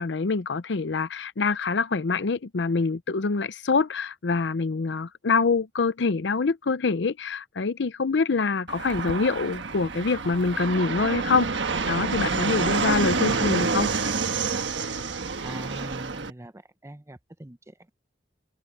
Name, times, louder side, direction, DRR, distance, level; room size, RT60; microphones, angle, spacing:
voice 1, 0.0-11.6 11.9-13.9, left 4 dB, 70° left, 0.6 m, -25 dB
Fixed-wing aircraft airplane, 8.7-16.3, right 4 dB, 85° right, 1.3 m, -28 dB
voice 2, 13.3-13.9 15.4-17.9, right 1 dB, 15° right, 0.8 m, -42 dB
open air
head